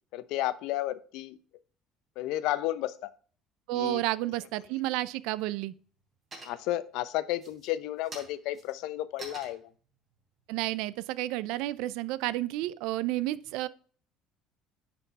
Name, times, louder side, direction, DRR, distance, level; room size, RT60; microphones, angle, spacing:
voice 1, 0.1-1.4 2.2-3.1 3.7-4.0 6.4-9.7, left 14 dB, 75° left, 0.6 m, -32 dB
voice 2, 3.7-5.7 10.5-13.7, right 16 dB, 80° right, 0.5 m, -31 dB
sound 1, 5.1-5.2 5.6-6.1 6.3-6.9 7.3-11.7, right 2 dB, 30° right, 3.6 m, -49 dB
10.0 x 4.4 x 4.1 m
cardioid pair, 130°, 0 cm